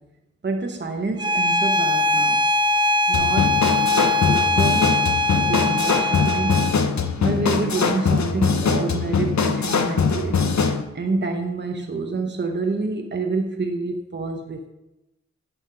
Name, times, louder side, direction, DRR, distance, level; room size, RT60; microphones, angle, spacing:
voice 1, 0.4-2.4 3.1-3.5 4.0-5.0 5.4-6.6 7.2-10.4 10.9-14.7, right 3 dB, 40° right, 4 dB, 0.8 m, -27 dB
Bowed string instrument, 1.2-6.8, left 1 dB, 15° right, 0.5 m, -21 dB
sound 1, 3.1-10.8, left 5 dB, 70° left, 0.8 m, -22 dB
10.5 x 3.6 x 5.6 m, 0.94 s
wide cardioid pair, 60°, 29 cm